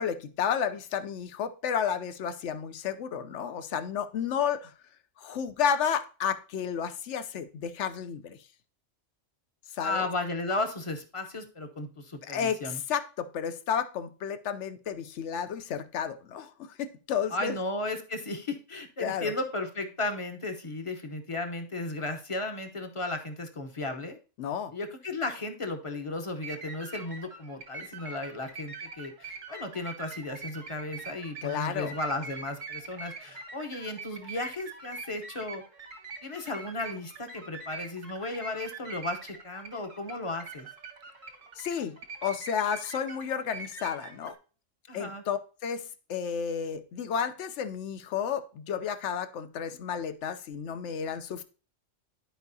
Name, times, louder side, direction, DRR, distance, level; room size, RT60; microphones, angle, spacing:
voice 1, 0.0-4.7 5.2-8.4 9.7-10.1 12.2-17.6 19.0-19.3 24.4-24.7 31.4-31.9 41.6-44.3 44.9-45.8 46.1-51.4, left 7 dB, 70° left, 11 dB, 1.0 m, -32 dB
voice 2, 9.8-12.8 17.3-24.2 24.7-35.6 36.2-40.7 44.9-45.2, left 2 dB, 30° left, 5 dB, 0.8 m, -35 dB
sound 1, 26.2-44.3, right 4 dB, 80° right, 1.8 m, -44 dB
12.5 x 4.7 x 2.7 m, 0.36 s
omnidirectional pair, 1.3 m